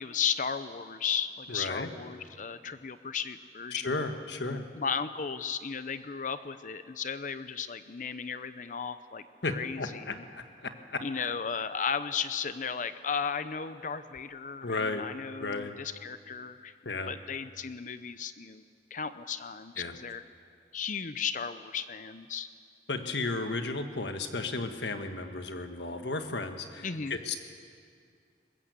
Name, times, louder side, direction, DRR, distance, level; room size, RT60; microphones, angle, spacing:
voice 1, 0.0-4.0 4.5-10.3 11.0-18.6 18.9-20.2 20.7-22.5 26.8-27.2, left 6 dB, 45° left, 12 dB, 0.6 m, -35 dB
voice 2, 1.5-1.9 3.7-4.6 9.4-11.0 14.6-15.0 15.4-15.7 16.8-17.1 19.8-20.0 22.9-27.3, left 3 dB, 75° left, 6 dB, 1.6 m, -34 dB
21.5 x 20.5 x 8.2 m, 2.2 s
head